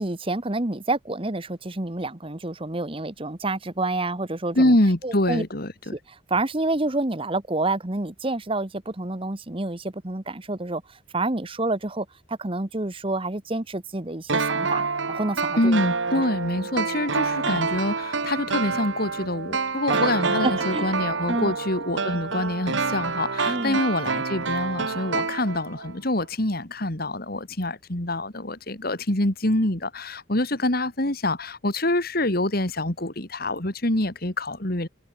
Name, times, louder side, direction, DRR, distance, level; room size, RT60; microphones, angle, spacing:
voice 1, 0.0-4.8 5.0-5.4 5.9-10.8 11.1-14.8 15.1-15.7 16.1-16.2 17.5-17.6 19.9-20.0 20.4-20.9 21.3-21.5 23.5-23.8, right 2 dB, 25° right, 1.2 m, -28 dB
voice 2, 4.5-5.9 15.6-34.9, left 1 dB, 50° left, 2.7 m, -25 dB
sound 1, 14.3-25.9 26.2-26.3, right 4 dB, 70° right, 1.5 m, -27 dB
head